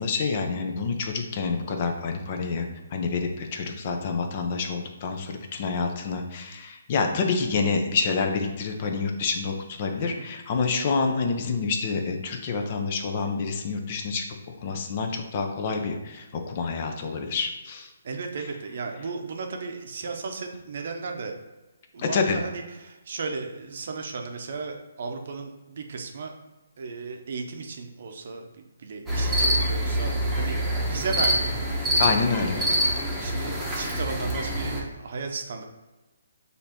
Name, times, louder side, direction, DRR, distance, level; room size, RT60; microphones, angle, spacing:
voice 1, 0.0-2.7 2.9-14.3 14.6-17.9 22.0-22.4 32.0-32.8, left 4 dB, 40° left, 4 dB, 0.6 m, -27 dB
voice 2, 18.0-21.3 21.9-26.3 26.8-28.4 28.8-31.5 33.2-35.6, right 4 dB, 60° right, 3 dB, 0.7 m, -35 dB
sound 1, 29.1-34.8, equal, 5° right, 1.0 m, -25 dB
6.6 x 2.7 x 2.9 m, 1.1 s
hypercardioid pair, 150°, 0 cm